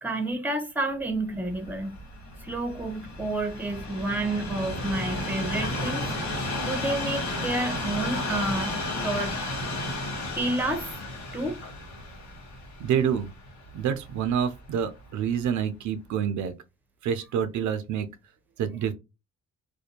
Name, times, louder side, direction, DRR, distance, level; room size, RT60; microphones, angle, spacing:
voice 1, 0.0-2.0 2.4-6.1 6.6-9.3 10.4-10.9 11.3-11.6, right 2 dB, 5° right, 0.7 m, -30 dB
Train, 1.3-14.5 15.2-15.4, left 1 dB, 65° left, 1.2 m, -33 dB
voice 2, 12.8-13.3 13.7-16.5 17.0-18.1 18.6-18.9, right 8 dB, 75° right, 0.5 m, -27 dB
2.5 x 2.2 x 2.8 m
cardioid pair, 90°, 30 cm